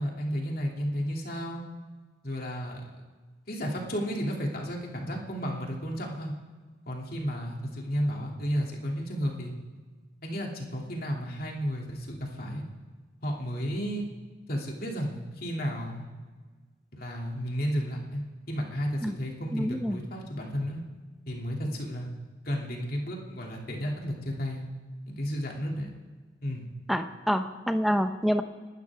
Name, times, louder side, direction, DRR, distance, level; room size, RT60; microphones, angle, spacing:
voice 1, 0.0-1.6 2.2-2.8 3.5-6.3 6.9-9.5 10.2-12.6 13.2-14.1 14.5-16.0 16.9-20.8 21.3-22.1 22.4-24.7 25.1-25.9 26.4-26.7, equal, 50° left, -1 dB, 2.8 m, -32 dB
voice 2, 19.5-20.0 26.9-28.4, equal, ahead, 7 dB, 0.9 m, -27 dB
29.0 x 12.5 x 3.6 m, 1.4 s
head